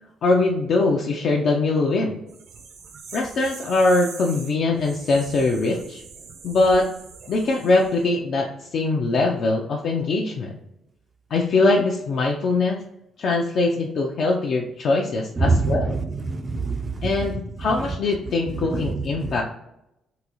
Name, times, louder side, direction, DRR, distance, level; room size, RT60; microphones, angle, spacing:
voice 1, 0.2-2.2 3.1-6.0 6.4-6.9 7.3-10.6 11.3-12.8 13.2-16.0 17.0-19.4, left 3 dB, 55° left, -1 dB, 0.4 m, -22 dB
sound 1, 2.3-8.1, right 5 dB, 70° right, 0.6 m, -42 dB
voice 2, 15.4-17.2 18.5-19.3, right 3 dB, 25° right, 5 dB, 0.3 m, -25 dB
3.8 x 2.3 x 2.9 m, 0.85 s
cardioid pair, 140°, 0 cm